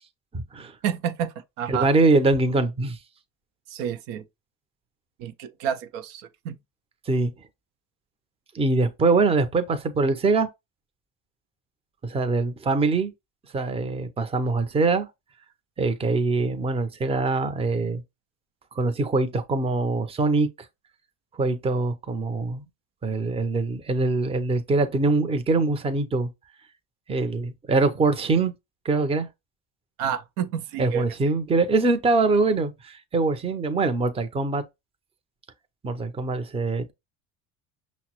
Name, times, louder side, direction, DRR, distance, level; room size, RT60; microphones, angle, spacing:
voice 1, 0.3-0.7 1.7-3.0 7.1-7.3 8.5-10.5 12.0-13.1 13.5-15.1 15.8-18.0 18.8-20.5 21.4-22.6 23.0-26.3 27.1-28.5 28.8-29.3 30.8-34.6 35.8-36.9, right 3 dB, 15° right, 0.5 m, -23 dB
voice 2, 0.8-1.9 3.7-4.2 5.2-6.6 30.0-31.0, right 8 dB, 75° right, 0.6 m, -29 dB
5.6 x 2.1 x 2.9 m
supercardioid pair, 80°, 42 cm